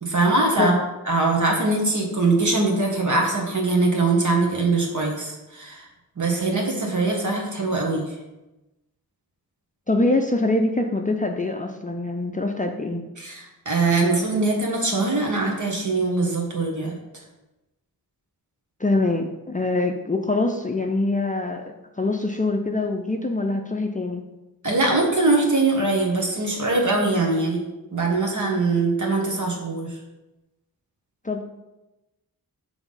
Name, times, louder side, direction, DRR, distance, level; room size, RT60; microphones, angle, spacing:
voice 1, 0.0-0.7 1.1-5.9 6.2-8.1 13.2-16.9 24.6-27.6 27.9-29.9, right 3 dB, 55° right, 0 dB, 1.6 m, -22 dB
voice 2, 9.9-13.0 18.8-21.6 22.0-24.2 31.2-31.4, left 2 dB, 20° left, 3 dB, 0.5 m, -24 dB
6.0 x 3.5 x 5.6 m, 1.0 s
wide cardioid pair, 70°, 36 cm